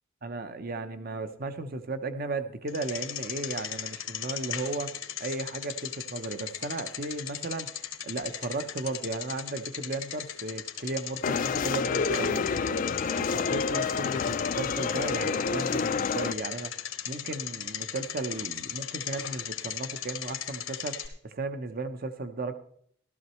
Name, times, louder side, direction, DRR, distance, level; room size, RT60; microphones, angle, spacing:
voice 1, 0.2-4.9 5.2-12.8 13.2-22.6, right 3 dB, 45° right, 9 dB, 0.8 m, -35 dB
Bicycle, 2.7-21.1, left 10 dB, 90° left, 1.2 m, -37 dB
sound 1, 11.2-16.3, left 5 dB, 40° left, 0.4 m, -29 dB
14.5 x 12.5 x 3.1 m, 0.66 s
head